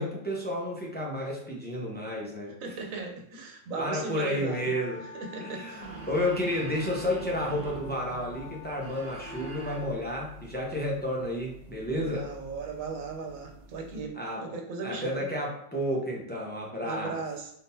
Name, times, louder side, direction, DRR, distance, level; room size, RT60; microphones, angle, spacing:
voice 1, 0.0-2.6 3.8-5.0 5.4-12.3 14.1-14.5 14.8-17.2, left 1 dB, 10° left, -3 dB, 0.6 m, -31 dB
voice 2, 2.6-4.7 5.0-5.9 12.0-14.2 14.4-15.2 16.8-17.5, right 4 dB, 85° right, 3 dB, 1.2 m, -37 dB
sound 1, 4.5-10.0, left 6 dB, 60° left, 0.6 m, -48 dB
sound 2, 5.8-14.0, right 4 dB, 60° right, 0.6 m, -45 dB
4.0 x 3.6 x 2.7 m, 0.72 s
omnidirectional pair, 1.4 m